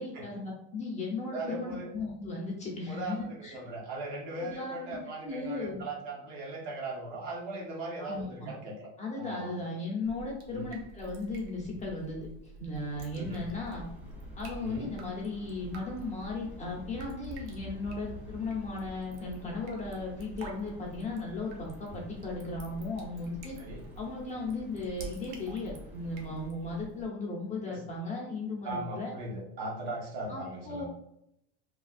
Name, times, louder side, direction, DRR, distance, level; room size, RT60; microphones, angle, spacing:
voice 1, 0.0-3.6 4.4-5.0 5.2-5.8 8.0-8.5 9.0-13.9 14.3-23.6 24.0-29.1 30.3-30.8, left 3 dB, 20° left, -3 dB, 0.9 m, -36 dB
voice 2, 1.3-1.9 2.9-8.9 9.2-9.6 10.5-10.7 13.2-13.4 14.6-14.9 23.6-23.9 27.7-27.8 28.6-30.8, right 2 dB, 60° right, -2 dB, 1.1 m, -39 dB
Drip, 10.0-27.0, right 2 dB, 90° right, 0.8 m, -48 dB
sound 1, 12.7-26.5, left 1 dB, 5° right, 0.6 m, -50 dB
3.3 x 2.3 x 2.4 m, 0.79 s
supercardioid pair, 130°, 33 cm